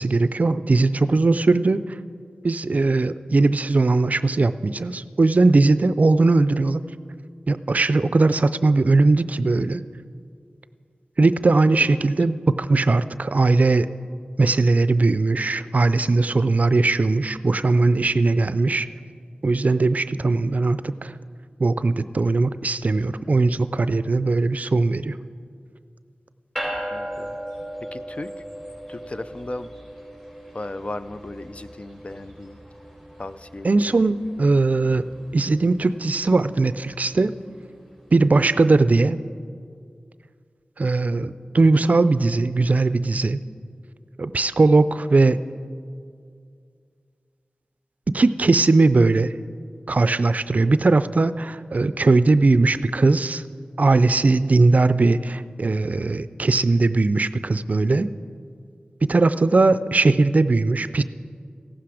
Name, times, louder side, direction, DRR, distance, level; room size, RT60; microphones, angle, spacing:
voice 1, 0.0-1.8 2.4-6.8 7.5-9.8 11.2-13.9 14.4-18.9 19.4-21.1 21.6-25.2 33.6-35.0 35.3-37.3 38.1-39.2 40.8-43.4 44.2-45.4 48.1-49.3 49.9-53.4 53.8-58.1 59.0-61.0, right 3 dB, 55° right, 14 dB, 0.4 m, -19 dB
sound 1, 26.6-38.1, equal, 20° left, 3.8 m, -38 dB
voice 2, 26.9-27.4 27.9-28.3 28.9-29.7 30.5-32.6 33.2-34.0, left 2 dB, 40° left, 12 dB, 0.4 m, -36 dB
15.0 x 12.0 x 4.9 m, 2.2 s
cardioid pair, 45°, 3 cm